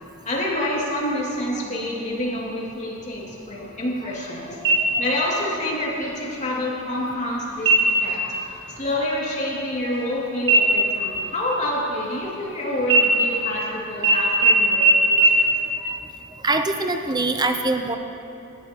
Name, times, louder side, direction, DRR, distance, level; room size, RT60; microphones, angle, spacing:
voice 1, 0.3-4.7 5.0-15.5, left 1 dB, 35° left, -4 dB, 2.4 m, -27 dB
sound 1, 4.6-5.3 5.7-5.8 6.4-6.9 7.6-8.1 8.5-8.8 9.0-10.2 10.5-12.5 12.9-13.6 14.0-14.1 14.4-14.5 14.8-14.9 15.2-15.3, right 3 dB, 60° right, 2.1 m, -20 dB
voice 2, 16.4-18.0, right 2 dB, 20° right, 6 dB, 0.6 m, -23 dB
17.5 x 12.0 x 2.9 m, 2.8 s
head